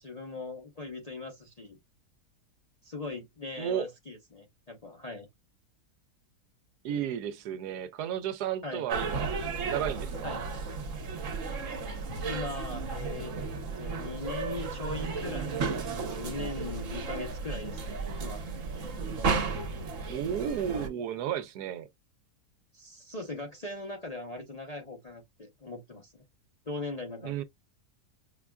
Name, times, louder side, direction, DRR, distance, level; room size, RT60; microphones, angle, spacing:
voice 1, 0.0-1.8 2.8-5.3 8.6-8.9 10.2-10.5 12.2-13.3 13.8-18.4 22.7-26.2 26.7-27.4, left 2 dB, 40° left, 0.5 m, -40 dB
voice 2, 6.8-9.3 9.7-10.4 20.1-21.9 27.2-27.4, right 9 dB, 80° right, 1.2 m, -33 dB
sound 1, 8.9-20.9, right 4 dB, 55° right, 1.2 m, -34 dB
5.5 x 2.3 x 2.2 m
omnidirectional pair, 1.7 m